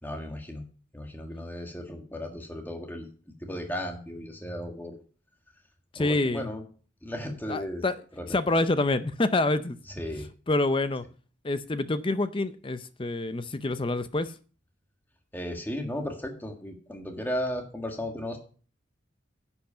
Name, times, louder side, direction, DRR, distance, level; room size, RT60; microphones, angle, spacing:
voice 1, 0.0-0.6 0.9-3.1 3.4-5.0 5.9-6.6 7.0-7.8 8.2-8.4 10.0-10.3 15.3-18.4, left 1 dB, 10° left, 3 dB, 1.7 m, -35 dB
voice 2, 5.9-6.5 7.5-8.0 8.3-9.8 10.5-11.1 11.4-14.3, left 2 dB, 25° left, 13 dB, 0.6 m, -27 dB
10.5 x 8.3 x 5.6 m, 0.40 s
head